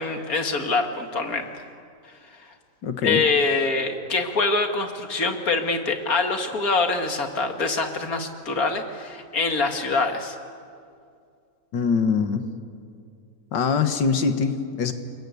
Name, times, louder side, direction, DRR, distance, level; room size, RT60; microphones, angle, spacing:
voice 1, 0.0-1.6 2.4-2.5 3.0-10.4, left 3 dB, 55° left, 5 dB, 2.4 m, -24 dB
voice 2, 2.8-3.2 11.7-12.5 13.5-14.9, left 5 dB, 85° left, 8 dB, 2.0 m, -23 dB
29.5 x 22.5 x 8.4 m, 2.3 s
omnidirectional pair, 1.9 m